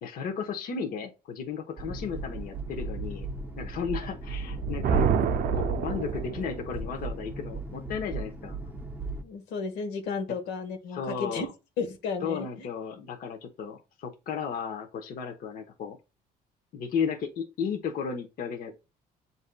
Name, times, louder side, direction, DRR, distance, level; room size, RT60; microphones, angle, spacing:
voice 1, 0.0-3.3 3.6-5.1 5.5-8.6 10.9-11.5 12.2-16.0 16.7-18.7, left 6 dB, 55° left, 0.9 m, -34 dB
sound 1, 1.8-9.2, right 3 dB, 10° right, 0.6 m, -37 dB
Thunder, 4.4-6.7, right 6 dB, 60° right, 0.5 m, -27 dB
voice 2, 9.2-11.5 11.8-12.7, left 5 dB, 85° left, 1.1 m, -33 dB
7.3 x 2.7 x 2.2 m
cardioid pair, 110°, 17 cm